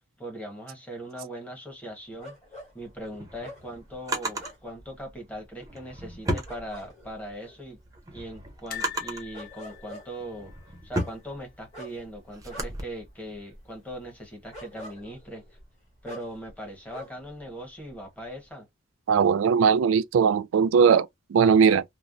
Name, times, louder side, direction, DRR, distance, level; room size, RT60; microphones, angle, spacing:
voice 1, 0.2-2.3 2.7-7.8 8.1-10.5 10.8-15.4 16.0-18.7, right 1 dB, 5° left, 1.1 m, -40 dB
sound 1, 2.2-17.4 17.7-18.5, equal, 35° left, 1.7 m, -48 dB
Drawer open or close, 2.9-4.5 5.6-7.2 7.7-9.3 10.0-12.8, right 1 dB, 15° right, 0.7 m, -34 dB
sound 2, 8.7-11.8 12.0-12.2 12.5-12.6 13.8-14.3 14.9-15.0, left 12 dB, 50° left, 0.7 m, -44 dB
voice 2, 19.1-21.8, right 6 dB, 75° right, 0.3 m, -20 dB
3.1 x 2.1 x 2.5 m
head